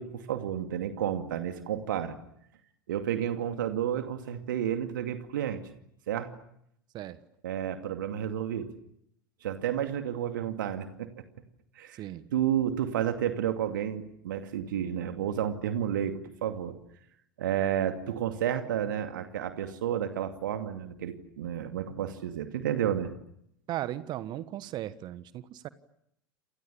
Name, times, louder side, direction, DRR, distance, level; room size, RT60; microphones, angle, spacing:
voice 1, 0.0-2.1 2.9-5.6 6.1-6.3 7.4-8.7 9.4-11.2 11.8-12.0 12.3-16.8 17.4-23.1, right 10 dB, 65° right, 7 dB, 2.5 m, -31 dB
voice 2, 23.7-25.7, right 13 dB, 40° right, 15 dB, 1.4 m, -36 dB
29.5 x 27.5 x 7.2 m, 0.75 s
figure-of-eight pair, 80°, 11 cm